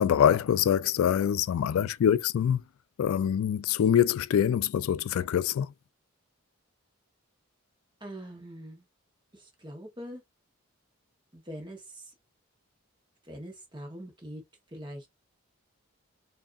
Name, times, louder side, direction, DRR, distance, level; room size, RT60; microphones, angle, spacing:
voice 1, 0.0-2.6 3.0-5.7, left 9 dB, 80° left, 0.3 m, -24 dB
voice 2, 8.0-8.8 9.3-10.2 11.3-12.1 13.2-14.4 14.7-15.1, equal, 20° right, 1.2 m, -43 dB
4.8 x 2.7 x 2.5 m
head